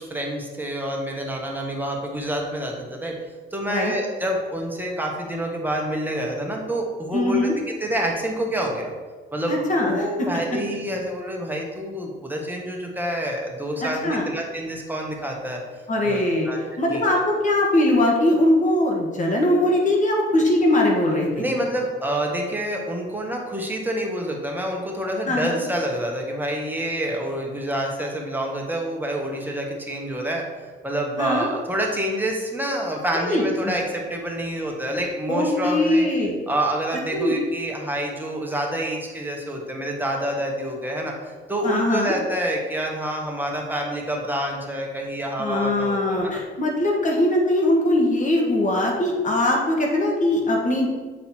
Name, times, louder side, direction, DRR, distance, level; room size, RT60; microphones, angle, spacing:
voice 1, 0.0-3.2 3.5-7.5 7.8-8.9 9.3-15.6 16.0-16.6 16.9-17.0 21.4-30.4 30.8-36.1 36.5-46.4, right 1 dB, 10° right, 0 dB, 1.4 m, -27 dB
voice 2, 7.1-7.5 9.5-10.6 13.8-14.3 15.9-16.5 16.8-21.4 25.3-25.6 31.2-31.5 33.1-33.5 35.3-36.4 37.1-37.3 41.6-42.1 45.4-50.9, left 1 dB, 40° left, -1 dB, 1.8 m, -21 dB
7.6 x 4.0 x 4.5 m, 1.4 s
cardioid pair, 90°, 20 cm